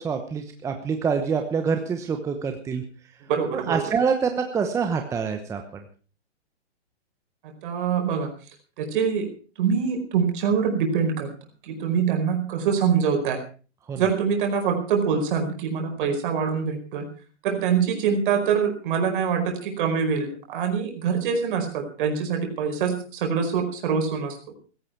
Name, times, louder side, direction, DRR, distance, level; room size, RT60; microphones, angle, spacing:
voice 1, 0.0-2.8 3.5-5.8 13.9-14.0, right 6 dB, 10° right, 5 dB, 0.9 m, -26 dB
voice 2, 3.3-3.9 7.6-8.3 8.8-9.3 9.6-11.3 11.6-13.4 13.9-17.1 17.4-24.4, right 6 dB, 45° right, 4 dB, 4.9 m, -24 dB
16.5 x 14.5 x 4.6 m, 0.37 s
hypercardioid pair, 145°, 35 cm